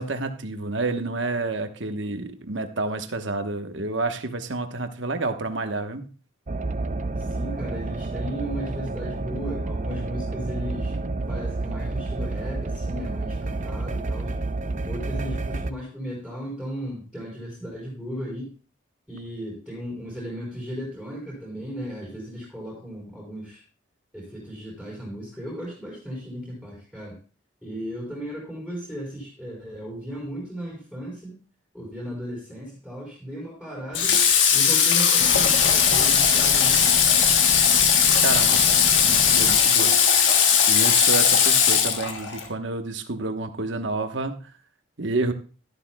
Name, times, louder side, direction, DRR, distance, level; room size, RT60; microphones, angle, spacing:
voice 1, 0.0-6.1 38.2-40.4 40.7-44.5 45.0-45.3, right 2 dB, 70° right, 7 dB, 1.1 m, -29 dB
sound 1, 6.5-15.7, right 2 dB, 35° right, 0.5 m, -29 dB
voice 2, 7.1-10.9 11.3-14.3 14.8-18.5 19.1-23.6 24.1-27.2 27.6-31.4 31.7-34.2 34.5-37.0, equal, 5° left, -5 dB, 4.2 m, -36 dB
Water / Water tap faucet, 33.9-42.5, left 7 dB, 70° left, 1.6 m, -18 dB
sound 2, 35.2-39.6, left 3 dB, 40° left, 0.6 m, -34 dB
13.0 x 12.0 x 2.3 m, 0.36 s
head